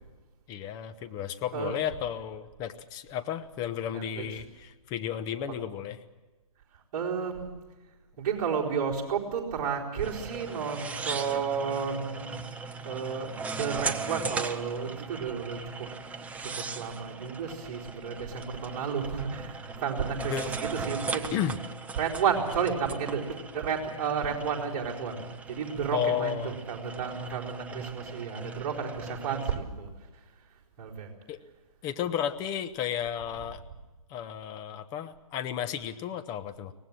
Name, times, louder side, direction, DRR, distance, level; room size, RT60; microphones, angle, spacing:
voice 1, 0.5-6.0 20.1-20.5 21.3-21.6 25.9-26.5 31.3-31.4 31.8-33.6 34.1-36.7, left 9 dB, 20° left, 9 dB, 1.0 m, -33 dB
voice 2, 3.9-4.2 6.9-7.5 8.2-12.4 12.8-15.9 16.4-20.3 20.6-21.3 22.0-29.9 30.8-31.1, right 6 dB, 35° right, -4 dB, 4.4 m, -32 dB
sound 1, 10.0-29.6, right 4 dB, 10° right, 0.7 m, -39 dB
23.5 x 19.0 x 7.5 m, 1.2 s
hypercardioid pair, 140°, 18 cm